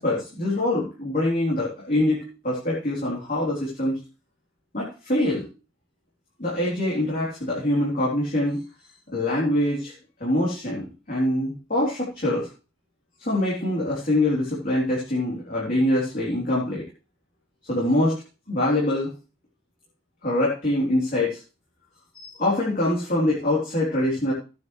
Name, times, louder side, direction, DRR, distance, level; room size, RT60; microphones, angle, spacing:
voice 1, 0.0-4.0 4.7-5.5 6.4-8.6 9.1-9.9 10.2-12.5 13.2-16.8 17.7-18.1 18.5-19.1 20.2-21.4 22.1-24.3, left 1 dB, 40° left, -5 dB, 3.7 m, -24 dB
15.0 x 9.5 x 3.3 m, 0.33 s
head